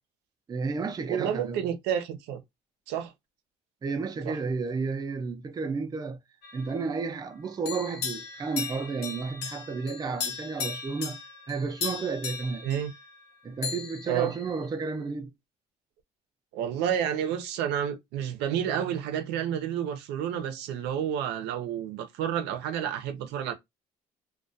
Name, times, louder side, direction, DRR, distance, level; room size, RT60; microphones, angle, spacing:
voice 1, 0.5-1.6 3.8-6.2 6.5-11.2 11.5-12.7 13.4-15.3, right 4 dB, 25° right, 0.4 m, -32 dB
voice 2, 1.1-2.4 2.9-3.1 4.3-4.4 12.6-12.9 14.1-14.3 16.5-23.5, right 9 dB, 90° right, 0.5 m, -30 dB
sound 1, 6.4-7.3 7.7-13.4 13.6-15.1, left 6 dB, 80° left, 0.6 m, -38 dB
2.2 x 2.2 x 2.6 m
cardioid pair, 110°, 17 cm